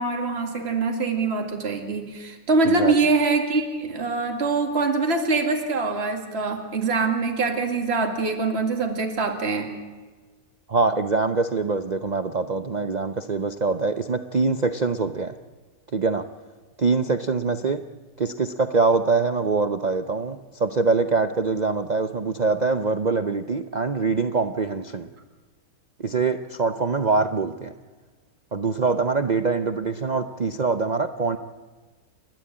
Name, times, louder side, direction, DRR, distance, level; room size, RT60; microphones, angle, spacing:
voice 1, 0.0-9.8, right 3 dB, 35° right, 3 dB, 2.4 m, -24 dB
voice 2, 10.7-15.4 15.9-16.3 16.8-17.8 18.2-25.1 26.0-27.7 28.5-31.4, right 4 dB, 90° right, 9 dB, 0.3 m, -24 dB
29.5 x 12.5 x 8.8 m, 1.4 s
omnidirectional pair, 1.9 m